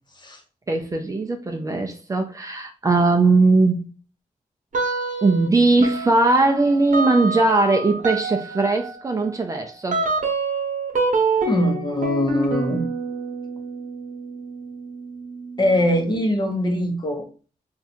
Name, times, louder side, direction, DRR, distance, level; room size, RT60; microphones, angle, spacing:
voice 1, 0.7-3.8 5.2-10.0, right 3 dB, 25° right, 0.4 m, -19 dB
sound 1, 4.7-5.5 5.8-16.2, right 3 dB, 70° right, 0.9 m, -27 dB
voice 2, 11.4-12.9 15.6-17.3, left 1 dB, 30° left, 0.8 m, -22 dB
2.7 x 2.4 x 4.1 m
wide cardioid pair, 150°, 14 cm